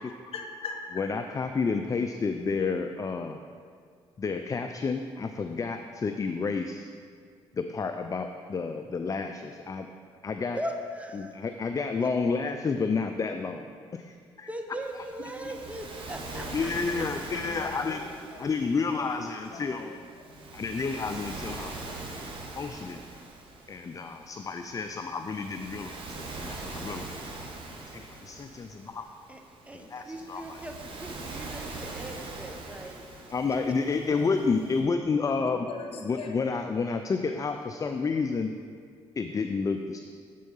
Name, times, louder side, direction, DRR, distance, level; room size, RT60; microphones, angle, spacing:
voice 1, 0.3-0.8 15.4-15.5 16.3-18.4 19.0-20.5 33.9-34.8 35.0-36.4, left 4 dB, 60° left, 3 dB, 1.0 m, -43 dB
voice 2, 1.0-3.4 4.2-6.9 7.5-9.9 10.2-10.6 11.1-14.5 16.5-18.0 18.4-19.9 20.5-21.7 22.6-23.0 23.7-29.1 29.9-30.6 33.3-35.7 36.0-38.6 39.2-40.0, left 4 dB, 30° left, 7 dB, 0.4 m, -30 dB
voice 3, 10.5-11.3 14.5-16.7 17.0-17.1 29.3-29.4 29.7-33.0, right 1 dB, 10° right, 4 dB, 0.8 m, -39 dB
Waves surf, 14.8-34.8, right 3 dB, 50° right, 1.5 m, -42 dB
7.5 x 4.5 x 5.5 m, 2.1 s
supercardioid pair, 60°, 11 cm